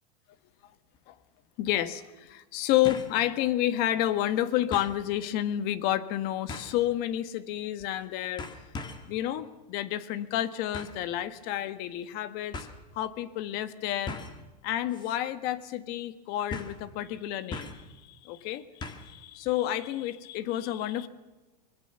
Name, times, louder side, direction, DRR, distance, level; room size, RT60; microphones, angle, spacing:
sound 1, 0.9-1.0 2.8-3.2 3.6-3.7 4.7-5.0 6.5-6.8 7.8-8.0 8.4-9.1 10.7-11.0 12.0-12.1 12.5-12.7 14.1-14.4 14.9-15.2 15.4-15.5 16.5-16.8 17.5-17.9 18.8-19.2 19.5-19.6, left 3 dB, 20° left, 2.1 m, -40 dB
voice 1, 1.6-8.4 9.0-12.6 12.9-14.2 14.6-21.1, left 13 dB, 50° left, 12 dB, 1.6 m, -30 dB
24.5 x 21.5 x 7.0 m, 1.1 s
supercardioid pair, 140°, 21 cm